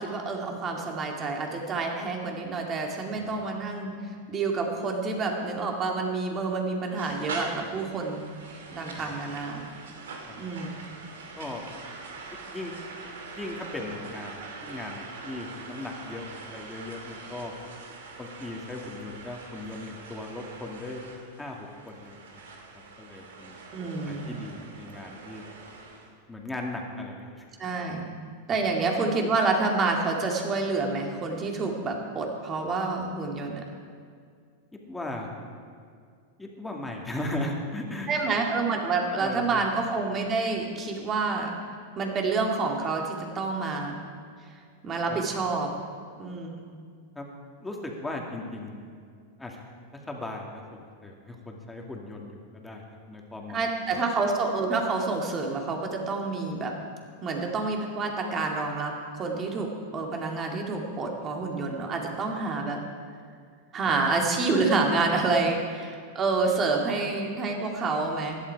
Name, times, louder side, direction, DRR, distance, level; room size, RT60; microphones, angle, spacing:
voice 1, 0.0-3.9 4.3-8.3 8.7-9.7 10.4-10.8 23.7-24.3 27.6-28.1 28.5-33.6 38.1-41.5 42.0-44.0 44.8-45.7 46.2-46.6 53.5-56.8 57.2-62.8 63.7-68.4, right 3 dB, 30° right, 1 dB, 2.5 m, -28 dB
voice 2, 3.1-3.4 7.6-7.7 9.0-9.1 10.3-10.4 11.4-11.6 12.3-12.7 13.3-17.5 18.2-21.0 21.4-22.4 23.0-23.5 24.0-25.4 26.3-27.7 34.9-35.3 36.4-38.6 39.2-39.6 45.1-45.2 47.2-47.3 47.6-48.8 49.4-49.6 50.1-54.0, left 2 dB, 10° left, 0 dB, 2.3 m, -38 dB
sound 1, 7.0-26.1, right 3 dB, 80° right, 2.2 m, -43 dB
16.0 x 11.5 x 4.8 m, 2.2 s
hypercardioid pair, 115°, 0 cm